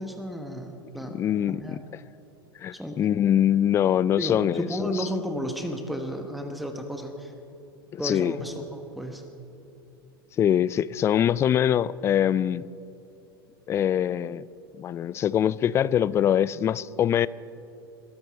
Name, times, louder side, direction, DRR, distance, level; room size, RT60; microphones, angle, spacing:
voice 1, 0.0-1.2 1.5-1.8 2.7-3.0 4.2-7.3 8.0-9.2, equal, ahead, 1.3 m, -33 dB
voice 2, 1.1-2.0 2.6-5.1 7.9-8.3 10.4-12.7 13.7-14.5 14.8-17.3, left 10 dB, 20° left, 0.3 m, -23 dB
22.0 x 13.0 x 4.2 m
figure-of-eight pair, 85°, 13 cm